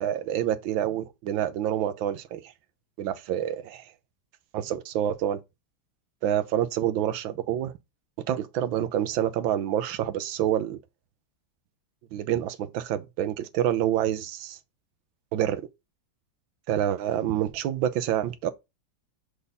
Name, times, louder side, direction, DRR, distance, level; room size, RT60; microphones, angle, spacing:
voice 1, 0.0-2.5 3.0-3.9 4.5-5.4 6.2-7.7 8.3-10.8 12.1-14.6 15.3-15.7 16.7-18.5, right 11 dB, 85° right, 1.5 m, -27 dB
6.7 x 4.1 x 3.4 m
omnidirectional pair, 2.1 m